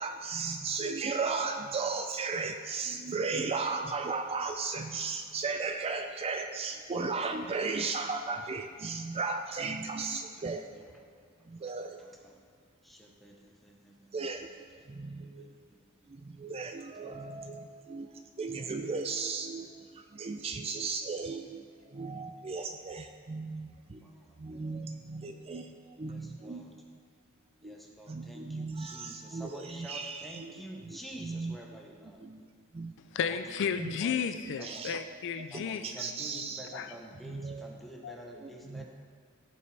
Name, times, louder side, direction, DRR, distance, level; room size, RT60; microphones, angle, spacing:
voice 1, 0.0-10.7 11.5-12.0 14.1-14.5 14.9-15.4 16.1-18.1 18.4-24.1 24.4-26.6 27.6-27.7 28.1-31.6 32.2-32.5 32.7-32.9 33.8-34.0 34.6-35.1 35.5-36.7 37.2-37.7 38.4-38.9, right 4 dB, 25° right, 6 dB, 0.4 m, -36 dB
voice 2, 10.7-11.0 11.4-12.4 12.8-14.4 15.2-15.9 16.9-17.7 20.5-20.7 21.8-21.9 24.0-24.4 26.0-26.7 27.6-32.2 33.2-34.2 34.6-34.9 35.5-38.9, right 1 dB, ahead, -1 dB, 0.9 m, -49 dB
voice 3, 33.1-35.9 36.7-36.9 38.0-38.2, left 7 dB, 55° left, 10 dB, 0.4 m, -33 dB
15.0 x 5.4 x 3.4 m, 2.1 s
head